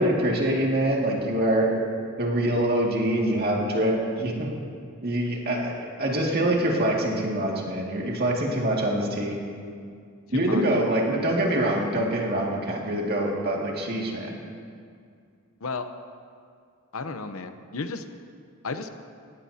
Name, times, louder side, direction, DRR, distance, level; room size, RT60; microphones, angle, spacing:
voice 1, 0.0-1.7 2.2-4.5 5.0-9.4 10.3-14.4, right 1 dB, 45° right, -2 dB, 2.2 m, -25 dB
voice 2, 10.3-10.7 15.6-15.9 16.9-18.0 18.6-18.9, left 4 dB, 75° left, 8 dB, 0.8 m, -33 dB
18.0 x 17.0 x 2.8 m, 2.2 s
head